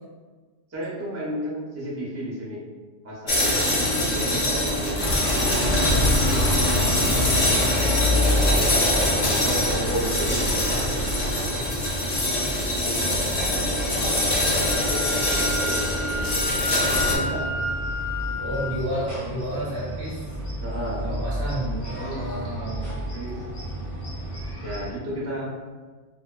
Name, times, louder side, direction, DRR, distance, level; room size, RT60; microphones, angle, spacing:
voice 1, 0.7-2.6 3.0-7.4 8.2-8.6 8.9-11.0 11.3-12.1 12.6-14.2 14.9-16.4 17.1-17.6 20.6-21.1 22.0-22.7 23.1-23.4 24.6-25.5, equal, 20° right, -6 dB, 0.4 m, -34 dB
sound 1, 3.3-17.2, left 1 dB, 40° left, 0.5 m, -24 dB
sound 2, 5.0-24.9, left 1 dB, 5° right, 0.8 m, -29 dB
Wind instrument woodwind instrument, 14.6-18.8, left 1 dB, 85° right, 0.9 m, -30 dB
voice 2, 18.4-20.2 21.0-22.9, right 1 dB, 60° right, -6 dB, 0.7 m, -31 dB
2.8 x 2.1 x 2.2 m, 1.4 s
omnidirectional pair, 1.2 m